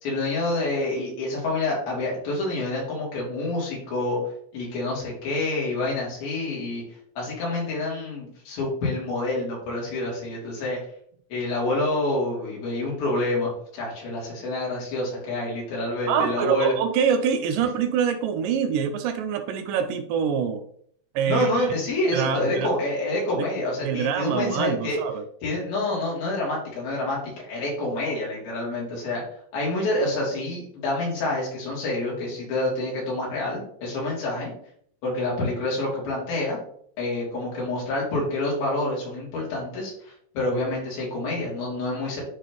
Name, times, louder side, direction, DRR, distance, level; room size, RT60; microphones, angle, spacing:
voice 1, 0.0-4.2 4.5-6.8 7.2-10.8 11.3-16.7 21.3-25.0 25.4-27.2 27.5-29.2 29.5-34.5 35.0-36.6 37.0-42.2, left 2 dB, 90° left, -4 dB, 4.6 m, -27 dB
voice 2, 16.1-20.6 21.2-21.7 22.1-22.7 23.4-23.5 23.8-25.2, right 7 dB, 80° right, 8 dB, 2.1 m, -25 dB
11.0 x 3.8 x 3.0 m, 0.62 s
omnidirectional pair, 4.2 m